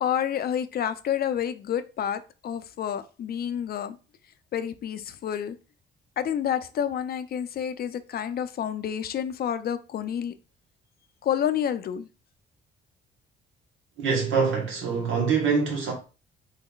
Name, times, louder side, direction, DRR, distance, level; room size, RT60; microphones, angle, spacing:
voice 1, 0.0-4.0 4.5-5.6 6.2-10.3 11.2-12.1, left 9 dB, 50° left, 0.4 m, -29 dB
voice 2, 14.0-15.9, right 5 dB, 80° right, 1.3 m, -24 dB
3.6 x 3.4 x 2.3 m
cardioid pair, 90°, 20 cm